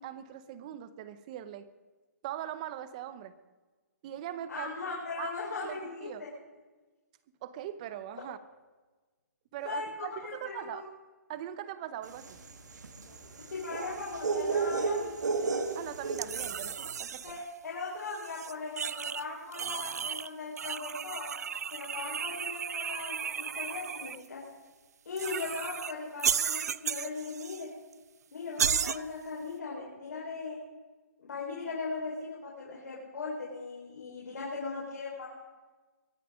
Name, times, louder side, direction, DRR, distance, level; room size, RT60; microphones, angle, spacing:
voice 1, 0.0-1.7 2.2-3.3 4.0-4.7 5.2-5.3 5.6-6.3 7.4-8.4 9.5-10.8 11.3-12.4 15.7-17.4, right 11 dB, 25° right, 14 dB, 0.7 m, -41 dB
voice 2, 4.5-6.3 9.6-10.8 13.5-15.1 17.2-21.3 21.7-24.4 25.0-27.7 28.3-30.6 31.2-35.3, left 4 dB, 80° left, -5 dB, 4.6 m, -39 dB
sound 1, 12.2-16.7, right 4 dB, 85° right, 2.0 m, -33 dB
sound 2, 16.2-17.4 18.1-19.2 19.5-20.3 20.6-24.2 25.2-25.9 26.2-27.6 27.9-28.0 28.6-29.0, right 7 dB, 65° right, 0.4 m, -34 dB
23.0 x 9.2 x 5.1 m, 1.3 s
hypercardioid pair, 165°, 9 cm